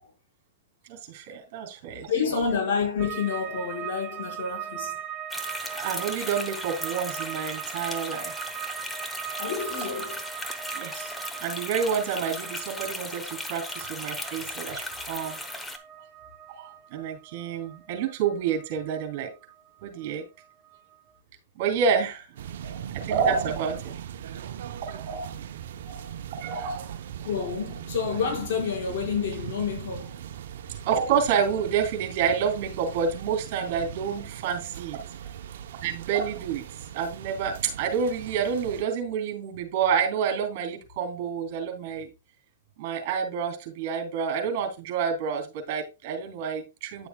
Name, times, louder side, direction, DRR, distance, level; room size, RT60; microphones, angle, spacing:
voice 1, 0.9-2.1 5.7-8.3 10.7-11.1 11.4-15.4 16.5-19.3 19.8-20.2 21.6-22.3 23.0-23.9 24.9-25.4 26.4-27.3 30.9-35.0 35.8-36.6 36.9-42.1 42.8-47.1, right 6 dB, 50° right, 3.4 m, -28 dB
voice 2, 2.1-5.0 8.1-8.2 9.4-10.2 14.2-14.3 22.6-22.9 24.4-24.5 25.9-26.2 27.2-30.2 35.6-35.7, left 6 dB, 55° left, 5.4 m, -29 dB
sound 1, 3.0-20.1 20.4-21.1, right 10 dB, 20° right, 1.4 m, -40 dB
sound 2, 5.3-15.8, left 2 dB, 5° left, 1.0 m, -37 dB
sound 3, 22.4-38.8, right 10 dB, 70° right, 0.8 m, -39 dB
10.0 x 7.0 x 2.3 m
hypercardioid pair, 130°, 0 cm